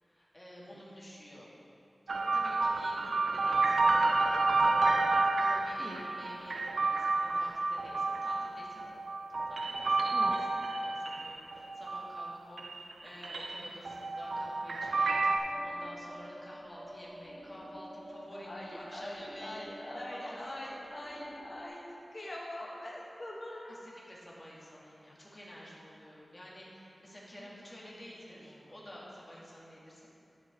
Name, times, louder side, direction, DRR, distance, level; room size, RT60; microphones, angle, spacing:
voice 1, 0.0-1.5 2.1-3.9 5.4-8.9 9.5-10.3 10.7-19.6 19.9-20.3 20.6-21.0 22.2-22.3 23.7-30.1, equal, 25° left, -6 dB, 2.1 m, -50 dB
sound 1, 2.1-12.3 12.6-15.4, right 3 dB, 90° right, 0.4 m, -30 dB
sound 2, 15.4-21.7, equal, 30° right, 1.8 m, -48 dB
voice 2, 18.4-23.8 27.4-28.0 28.3-28.7, left 1 dB, 45° left, -3 dB, 1.2 m, -44 dB
12.0 x 5.0 x 4.2 m, 2.7 s
wide cardioid pair, 70°, 0 cm